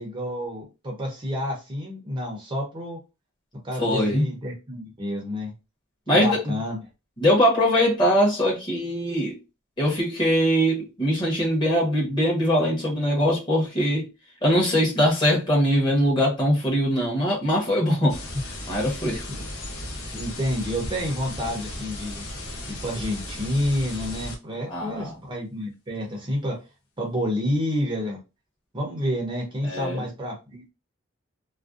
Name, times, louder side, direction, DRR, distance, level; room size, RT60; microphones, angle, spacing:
voice 1, 0.0-3.0 3.6-5.5 6.1-6.8 19.3-19.4 20.1-22.3 22.8-26.6 27.0-28.2 28.7-30.7, equal, 20° right, 0.6 m, -29 dB
voice 2, 3.8-4.3 6.1-6.4 7.2-9.4 9.8-14.1 14.4-18.2 18.7-19.2 24.7-25.2 29.6-30.1, equal, 20° left, 0.9 m, -22 dB
sound 1, 18.1-24.4, left 1 dB, 75° left, 0.7 m, -35 dB
2.5 x 2.1 x 2.3 m
head